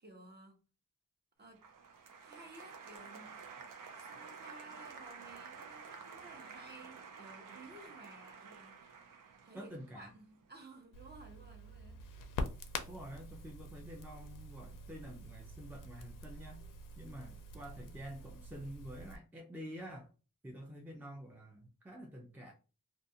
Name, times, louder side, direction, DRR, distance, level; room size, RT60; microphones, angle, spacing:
voice 1, 0.0-0.6 1.4-1.7 2.2-3.4 3.9-9.0 9.4-12.0, right 2 dB, 30° right, 0.8 m, -55 dB
Applause, 1.6-10.6, right 5 dB, 80° right, 0.6 m, -51 dB
voice 2, 9.5-10.1 12.9-16.6 17.0-20.1 20.4-22.5, equal, 5° right, 0.4 m, -48 dB
Crackle, 10.9-19.2, left 2 dB, 75° left, 0.5 m, -46 dB
2.4 x 2.4 x 2.6 m
wide cardioid pair, 90°, 32 cm